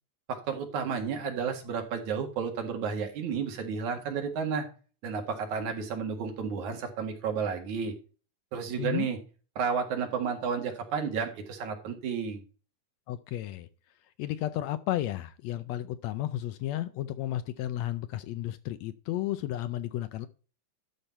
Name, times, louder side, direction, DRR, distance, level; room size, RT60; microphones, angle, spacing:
voice 1, 0.3-4.7 5.0-7.9 8.5-9.2 9.6-12.4, right 6 dB, 75° right, 3.3 m, -32 dB
voice 2, 13.1-13.7 14.2-20.3, left 13 dB, 75° left, 1.8 m, -33 dB
12.0 x 5.7 x 4.4 m
omnidirectional pair, 3.4 m